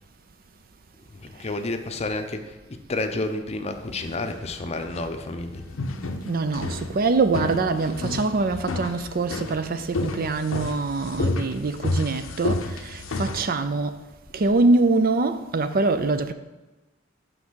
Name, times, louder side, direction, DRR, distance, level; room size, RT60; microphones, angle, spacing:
voice 1, 1.1-5.6, left 2 dB, 35° left, 0.6 m, -30 dB
sound 1, 3.8-13.4, left 2 dB, 75° left, 0.6 m, -31 dB
voice 2, 6.3-14.0 14.3-16.3, right 3 dB, 45° right, 0.5 m, -24 dB
5.9 x 5.4 x 6.3 m
head